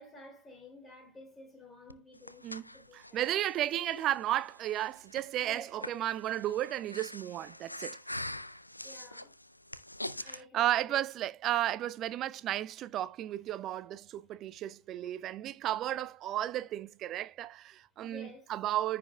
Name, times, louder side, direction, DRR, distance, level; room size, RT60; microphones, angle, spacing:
voice 1, 0.0-3.3 3.8-4.0 5.4-6.0 8.8-9.3 10.2-11.0 18.0-18.5, left 1 dB, 15° left, 3.4 m, -52 dB
Breathing, 1.9-10.4, left 1 dB, 85° left, 0.4 m, -44 dB
voice 2, 2.4-8.0 10.2-19.0, right 13 dB, 35° right, 0.4 m, -34 dB
14.5 x 5.1 x 2.2 m
figure-of-eight pair, 90°, 0 cm